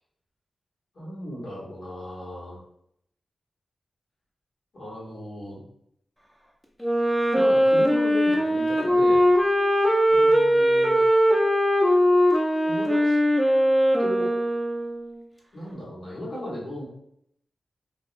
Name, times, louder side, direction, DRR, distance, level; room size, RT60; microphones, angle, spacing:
voice 1, 0.9-2.6 4.7-5.6 7.3-9.3 10.1-11.0 12.6-13.2 14.0-14.3 15.5-16.9, left 1 dB, 80° left, -7 dB, 1.2 m, -36 dB
Wind instrument woodwind instrument, 6.8-15.2, equal, ahead, 0.5 m, -20 dB
2.6 x 2.0 x 2.5 m, 0.72 s
wide cardioid pair, 100°, 0 cm